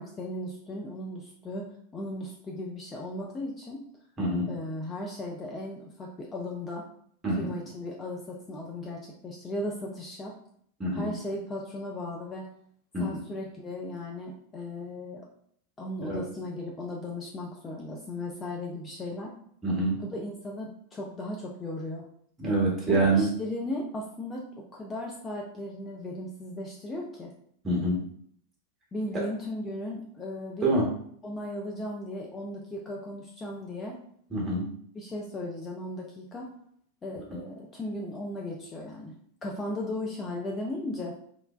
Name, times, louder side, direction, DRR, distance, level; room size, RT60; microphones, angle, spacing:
voice 1, 0.0-3.8 4.5-6.9 7.4-10.4 10.9-12.5 13.0-15.2 15.8-19.3 20.0-22.1 22.9-24.5 24.7-27.3 28.9-30.7 31.2-34.0 34.9-36.5 37.0-39.1 39.4-41.2, left 1 dB, 20° left, -2 dB, 0.4 m, -36 dB
voice 2, 7.2-7.6 10.8-11.1 12.9-13.2 16.0-16.2 19.6-20.0 22.4-23.3 27.6-28.0 30.6-30.8 34.3-34.7 37.3-37.4, right 2 dB, 20° right, -3 dB, 1.0 m, -26 dB
3.0 x 2.1 x 2.3 m, 0.64 s
figure-of-eight pair, 90°, 0 cm